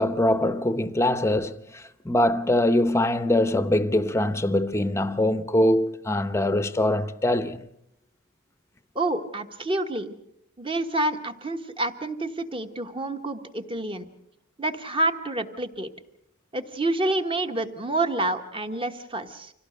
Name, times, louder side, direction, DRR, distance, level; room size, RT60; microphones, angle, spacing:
voice 1, 0.0-7.6, left 1 dB, 15° left, 0.8 m, -23 dB
voice 2, 8.9-10.2 10.6-14.1 14.6-15.9 16.5-19.5, right 2 dB, 25° right, 1.2 m, -28 dB
26.0 x 17.5 x 6.5 m
head